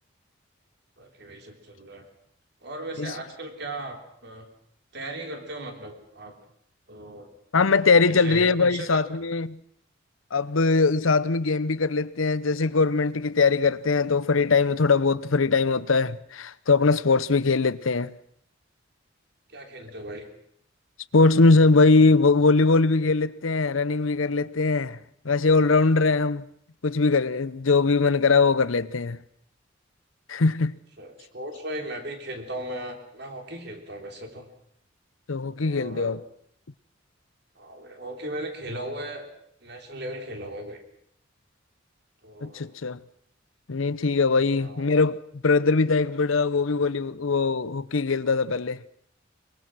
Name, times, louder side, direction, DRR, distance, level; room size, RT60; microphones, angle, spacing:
voice 1, 1.0-2.1 2.6-4.5 4.9-6.4 6.9-7.3 8.1-9.1 19.5-20.3 31.0-34.5 35.6-36.2 37.6-39.3 39.6-40.8 42.2-42.7 44.6-45.0, right 1 dB, 55° right, 3.4 m, -37 dB
voice 2, 7.5-9.6 10.3-18.1 21.1-25.0 25.2-26.5 26.8-29.2 30.3-30.8 35.3-36.2 42.4-43.0 43.7-48.8, left 4 dB, 85° left, 0.8 m, -21 dB
22.5 x 22.0 x 6.2 m
head